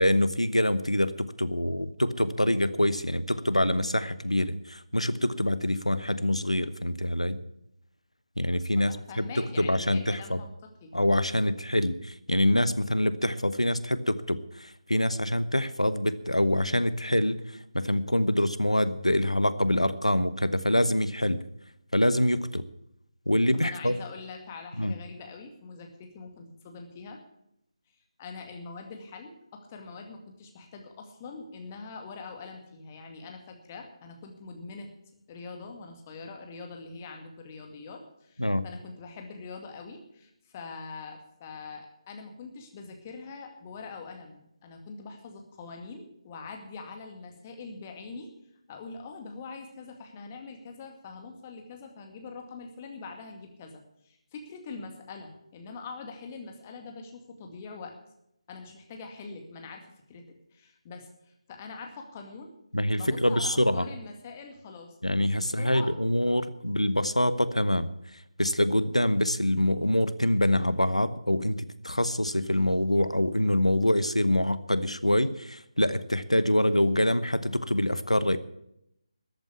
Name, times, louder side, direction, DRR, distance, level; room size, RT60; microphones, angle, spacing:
voice 1, 0.0-7.4 8.4-10.4 10.9-17.4 17.7-21.4 21.9-22.6 23.3-23.9 24.8-24.9 38.4-38.6 62.7-63.9 65.0-67.9 68.4-78.4, left 1 dB, 90° left, 14 dB, 1.1 m, -25 dB
voice 2, 8.8-10.5 10.8-10.9 23.5-27.2 28.2-34.9 35.3-48.3 48.7-57.9 58.5-60.2 60.5-62.5 63.0-64.9 65.4-65.9, left 4 dB, 20° left, 3 dB, 2.1 m, -43 dB
13.5 x 9.0 x 8.5 m, 0.78 s
figure-of-eight pair, 155°, 3 cm